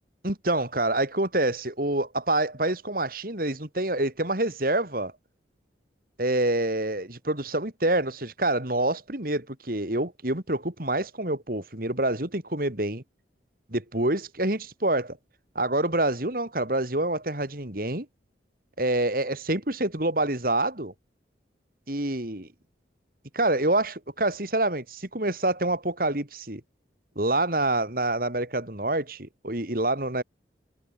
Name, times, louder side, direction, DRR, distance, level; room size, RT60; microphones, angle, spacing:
voice 1, 0.2-5.1 6.2-13.0 13.7-15.2 15.5-18.1 18.8-20.9 21.9-22.5 23.3-26.6 27.1-30.2, right 2 dB, 50° right, 3.2 m, -27 dB
head